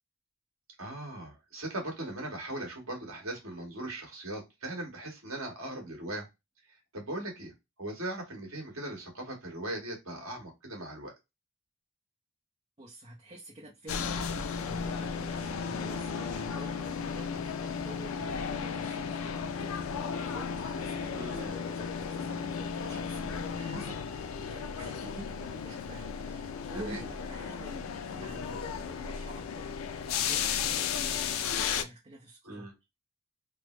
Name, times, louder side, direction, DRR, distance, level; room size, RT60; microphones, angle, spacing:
voice 1, 0.8-6.2 6.7-7.5 7.8-11.1 21.1-21.6 26.7-27.0 32.4-32.7, right 1 dB, 80° right, 1.5 m, -39 dB
voice 2, 12.8-32.7, right 1 dB, 30° right, 0.5 m, -49 dB
sound 1, 13.9-31.8, left 6 dB, 85° left, 0.4 m, -34 dB
3.4 x 2.0 x 3.0 m
head